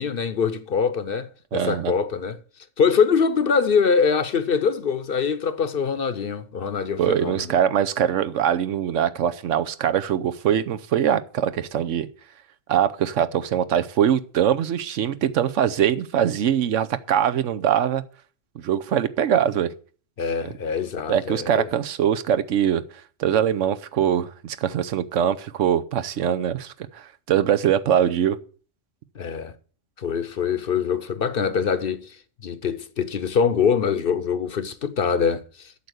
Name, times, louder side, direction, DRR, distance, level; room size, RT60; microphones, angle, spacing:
voice 1, 0.0-2.4 2.8-7.5 20.2-21.7 29.1-29.5 30.0-32.2 32.4-35.7, left 6 dB, 55° left, 0.9 m, -23 dB
voice 2, 1.5-1.9 7.0-12.1 12.7-18.0 18.5-19.7 21.1-22.8 23.2-28.4, right 9 dB, 85° right, 1.1 m, -22 dB
8.4 x 6.9 x 7.8 m
omnidirectional pair, 1.2 m